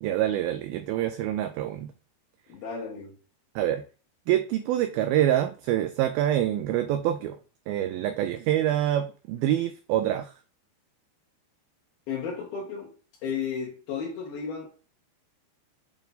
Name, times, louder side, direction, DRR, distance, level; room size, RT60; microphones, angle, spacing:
voice 1, 0.0-1.9 3.6-3.8 4.3-7.4 7.7-10.3, right 12 dB, 85° right, 2.1 m, -26 dB
voice 2, 2.5-3.2 12.1-12.9 13.2-14.7, left 6 dB, 70° left, 3.1 m, -33 dB
8.8 x 3.4 x 4.0 m
omnidirectional pair, 4.7 m